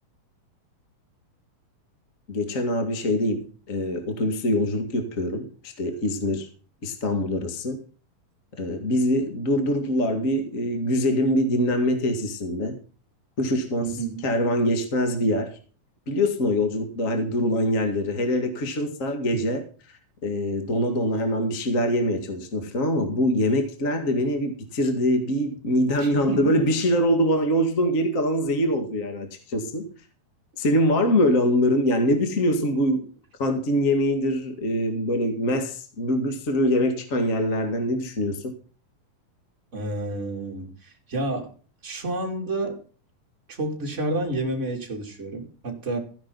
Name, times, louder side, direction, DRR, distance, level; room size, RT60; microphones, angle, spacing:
voice 1, 2.3-6.5 6.8-7.8 8.6-12.8 13.4-13.9 14.2-15.6 16.1-19.6 20.2-29.9 30.6-33.1 33.4-38.5, equal, 30° left, 6 dB, 1.7 m, -24 dB
voice 2, 13.8-14.2 19.3-19.4 26.0-26.6 39.7-41.5 41.8-42.8 43.5-46.0, right 2 dB, 20° right, 1 dB, 2.9 m, -30 dB
15.0 x 10.5 x 4.0 m, 0.39 s
omnidirectional pair, 4.1 m